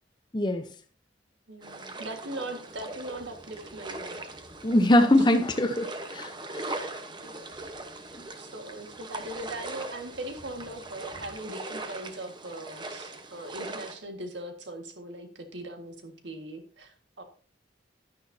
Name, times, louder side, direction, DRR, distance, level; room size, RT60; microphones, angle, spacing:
voice 1, 0.3-0.6 4.6-6.7, left 1 dB, 25° left, 6 dB, 0.8 m, -23 dB
voice 2, 1.5-4.2 5.2-5.3 6.8-7.0 7.2-7.4 8.4-17.2, right 1 dB, 70° right, 6 dB, 1.8 m, -40 dB
sound 1, 1.6-14.0, right 2 dB, 25° right, 1.0 m, -40 dB
11.5 x 10.0 x 2.8 m, 0.40 s
head